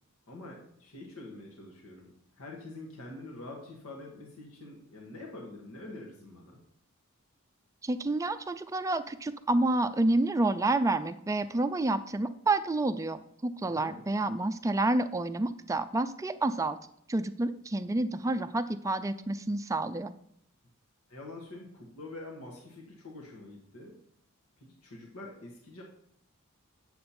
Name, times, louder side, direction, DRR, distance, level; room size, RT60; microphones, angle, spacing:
voice 1, 0.3-6.6 13.6-14.0 21.1-23.9 24.6-25.8, left 2 dB, 75° left, -1 dB, 1.5 m, -46 dB
voice 2, 7.8-16.8 17.1-20.1, right 2 dB, 15° right, 9 dB, 0.4 m, -29 dB
8.5 x 6.6 x 4.3 m, 0.70 s
head